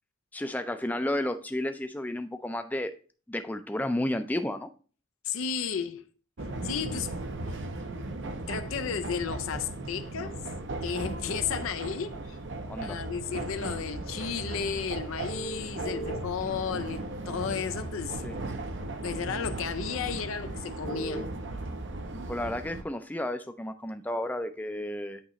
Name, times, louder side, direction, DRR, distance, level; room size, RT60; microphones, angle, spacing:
voice 1, 0.3-2.9 3.3-4.7 12.7-13.0 18.2-18.3 22.3-25.2, left 1 dB, 10° left, 0.4 m, -32 dB
voice 2, 5.2-6.0 6.6-7.2 8.5-10.5 10.8-12.4 12.8-18.2 19.0-21.3, left 7 dB, 75° left, 0.4 m, -33 dB
sound 1, 6.4-22.8, right 2 dB, 60° right, 0.7 m, -37 dB
sound 2, 15.3-16.2 17.3-17.4 20.8-21.2, right 2 dB, 60° left, 1.4 m, -37 dB
8.6 x 3.0 x 4.1 m
head